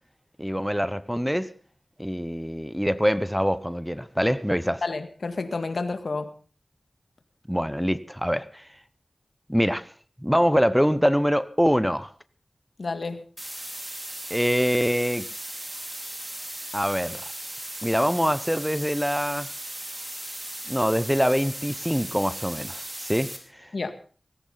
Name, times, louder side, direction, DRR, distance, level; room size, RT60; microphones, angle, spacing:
voice 1, 0.4-1.5 2.0-4.8 7.5-8.7 9.5-9.8 10.2-12.1 14.3-15.3 16.7-17.3 17.8-19.5 20.7-23.3 23.6-23.7, equal, ahead, 0.8 m, -24 dB
voice 2, 4.8-6.3 12.8-13.2 23.7-23.9, left 3 dB, 75° left, 1.9 m, -30 dB
sound 1, 13.4-23.4, right 1 dB, 25° right, 4.5 m, -37 dB
18.0 x 17.0 x 4.0 m
wide cardioid pair, 60°, 0 cm